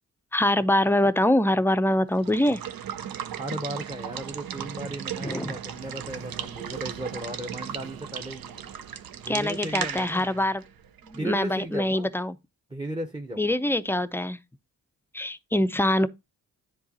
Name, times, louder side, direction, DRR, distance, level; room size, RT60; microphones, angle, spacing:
voice 1, 0.3-2.6 5.2-5.6 9.3-10.6 11.1-12.4 13.4-14.4 15.1-16.1, left 1 dB, 5° left, 0.5 m, -24 dB
Water / Water tap faucet / Liquid, 2.1-11.7, right 9 dB, 65° right, 0.7 m, -36 dB
voice 2, 3.4-8.4 9.2-10.5 11.1-12.1 12.7-13.6, right 1 dB, 15° right, 0.9 m, -36 dB
sound 1, 5.8-11.4, right 4 dB, 90° right, 1.1 m, -51 dB
9.6 x 3.9 x 2.8 m
supercardioid pair, 40°, 38 cm